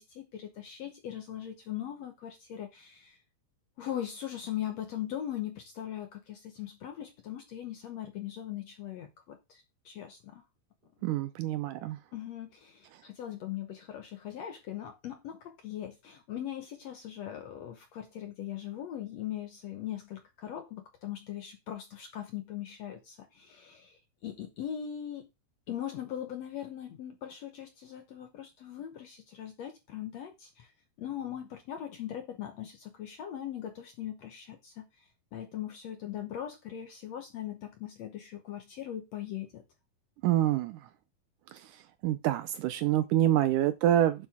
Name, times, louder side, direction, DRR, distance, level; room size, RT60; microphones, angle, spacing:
voice 1, 0.0-3.2 3.8-10.4 12.1-25.3 25.7-30.7 31.0-39.6, left 11 dB, 65° left, 1.7 m, -40 dB
voice 2, 11.0-12.0 40.2-40.8 42.0-44.3, right 12 dB, 80° right, 2.0 m, -26 dB
9.5 x 7.6 x 3.6 m
omnidirectional pair, 4.2 m